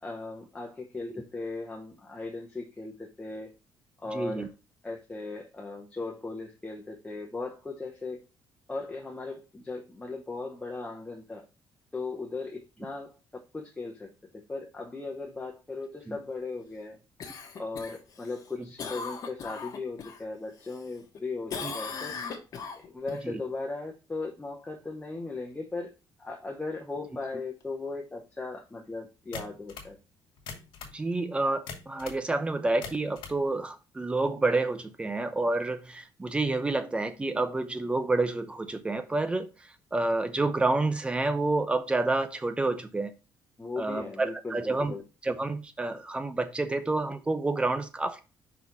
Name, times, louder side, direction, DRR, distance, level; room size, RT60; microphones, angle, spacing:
voice 1, 0.0-3.5 4.0-4.5 4.8-8.2 8.7-11.4 11.9-14.1 14.5-17.0 17.6-22.1 22.7-25.9 26.2-30.0 43.6-45.0, left 3 dB, 15° left, -1 dB, 0.9 m, -37 dB
voice 2, 4.1-4.5 16.1-16.2 21.6-21.7 23.2-23.4 30.9-39.5 39.9-43.1 43.8-44.9 45.2-48.2, right 2 dB, 15° right, 9 dB, 0.7 m, -29 dB
Cough, 17.2-20.2 20.6-21.2 21.5-23.2 27.6-27.7, left 5 dB, 45° left, 1.3 m, -39 dB
sound 1, 29.3-29.9 30.4-31.0 31.7-32.2 32.7-33.4, left 5 dB, 80° left, 2.0 m, -42 dB
5.6 x 4.1 x 4.5 m, 0.30 s
cardioid pair, 145°, 8 cm